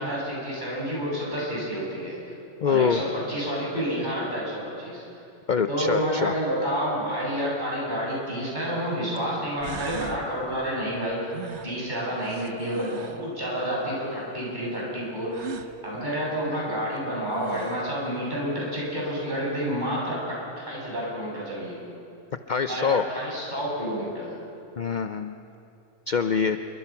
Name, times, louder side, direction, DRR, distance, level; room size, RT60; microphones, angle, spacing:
voice 1, 0.0-2.2 2.7-5.0 5.7-11.3 11.6-15.4 15.8-20.4 20.7-21.8 22.7-24.3, equal, 35° right, -5 dB, 7.1 m, -29 dB
voice 2, 2.6-3.0 5.5-6.3 22.5-23.0 24.8-25.4 26.1-26.6, left 6 dB, 50° left, 9 dB, 0.6 m, -24 dB
sound 1, 8.1-8.2 9.2-9.3 9.6-10.2 11.3-13.3 15.3-15.7 17.0-17.1 17.3-18.0, right 6 dB, 65° right, 1.3 m, -38 dB
28.0 x 23.5 x 5.9 m, 2.8 s
omnidirectional pair, 1.3 m